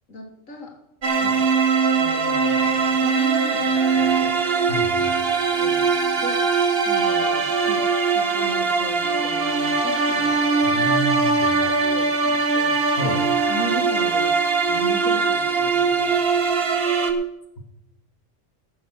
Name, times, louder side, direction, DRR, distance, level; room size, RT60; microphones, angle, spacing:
voice 1, 0.1-0.8 1.2-1.5 1.9-4.4 5.6-5.9 6.2-6.5 6.8-7.8 8.1-10.4 10.7-12.8 13.5-14.3 14.7-16.2, left 2 dB, 80° left, 1 dB, 2.5 m, -37 dB
sound 1, 1.0-17.1, right 4 dB, 50° right, 1.3 m, -21 dB
voice 2, 4.7-5.1 10.6-11.7 13.0-13.2, equal, 55° left, 0 dB, 2.3 m, -29 dB
14.5 x 7.1 x 6.5 m, 0.85 s
omnidirectional pair, 1.3 m